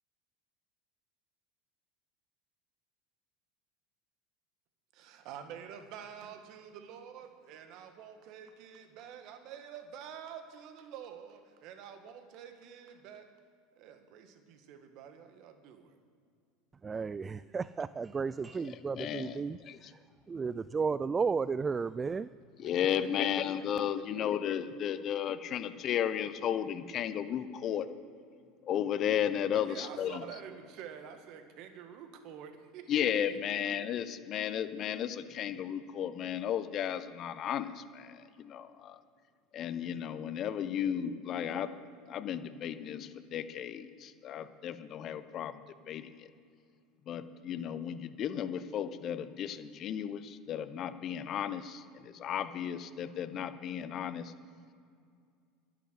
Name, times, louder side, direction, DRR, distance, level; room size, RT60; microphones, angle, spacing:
voice 1, 4.9-13.3 13.8-16.0 22.6-23.3 29.6-33.9, right 8 dB, 55° right, 8 dB, 1.7 m, -48 dB
voice 2, 16.8-19.6 20.3-22.3, right 5 dB, 25° right, 17 dB, 0.3 m, -33 dB
voice 3, 18.9-19.4 19.7-19.8 22.6-27.9 28.6-30.2 32.9-39.0 39.5-41.7 42.1-45.6 45.9-46.0 47.1-54.3, left 9 dB, 45° left, 12 dB, 0.9 m, -34 dB
12.0 x 11.0 x 7.7 m, 2.3 s
hypercardioid pair, 80°, 0 cm